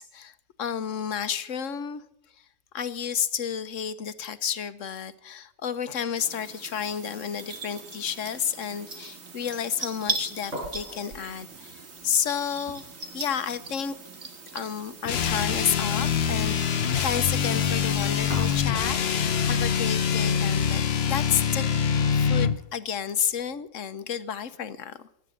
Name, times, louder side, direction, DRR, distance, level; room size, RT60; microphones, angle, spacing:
voice 1, 0.0-2.0 2.7-12.8 13.1-14.0 14.5-21.7 22.1-25.0, left 8 dB, 70° left, 12 dB, 1.3 m, -31 dB
sound 1, 6.2-18.6, right 4 dB, 80° right, 2.4 m, -40 dB
sound 2, 8.0-23.7, equal, 60° right, 7.0 m, -47 dB
sound 3, 15.0-22.6, left 7 dB, 55° left, 1.0 m, -25 dB
17.0 x 12.0 x 6.4 m, 0.77 s
omnidirectional pair, 1.4 m